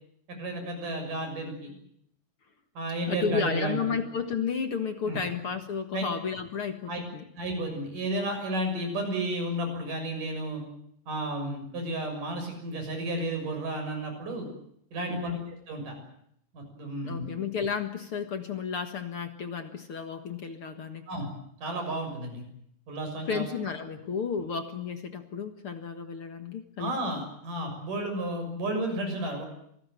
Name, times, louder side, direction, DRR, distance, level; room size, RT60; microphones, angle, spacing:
voice 1, 0.3-1.7 2.7-4.0 5.0-5.2 5.9-6.0 6.9-7.0 7.4-10.6 11.1-14.5 14.9-15.4 15.7-15.9 16.5-17.3 21.1-21.3 21.6-22.4 22.9-23.5 26.8-29.4, right 1 dB, 75° right, 4 dB, 8.4 m, -32 dB
voice 2, 3.1-7.2 15.1-15.4 17.0-21.1 23.3-26.9, left 6 dB, 50° left, 7 dB, 2.2 m, -32 dB
26.5 x 19.5 x 9.2 m, 0.71 s
omnidirectional pair, 3.7 m